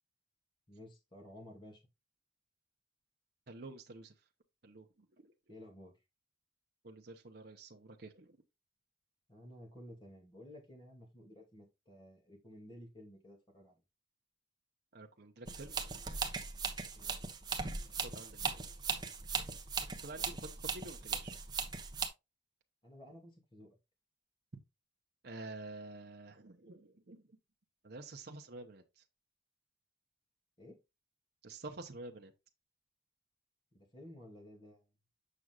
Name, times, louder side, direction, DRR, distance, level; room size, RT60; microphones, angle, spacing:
voice 1, 0.7-1.8 5.5-5.9 9.3-13.7 16.9-17.2 20.1-20.3 22.8-23.7 30.6-30.8 33.7-34.8, left 1 dB, 25° left, 2.4 m, -54 dB
voice 2, 3.5-4.1 4.6-4.9 5.2-5.3 6.8-8.4 14.9-15.8 18.0-18.6 20.0-21.3 25.2-27.2 27.8-29.0 31.4-32.3, right 2 dB, 60° right, 0.8 m, -49 dB
sound 1, 15.5-22.1, right 5 dB, 25° right, 1.1 m, -39 dB
7.9 x 6.0 x 2.4 m
head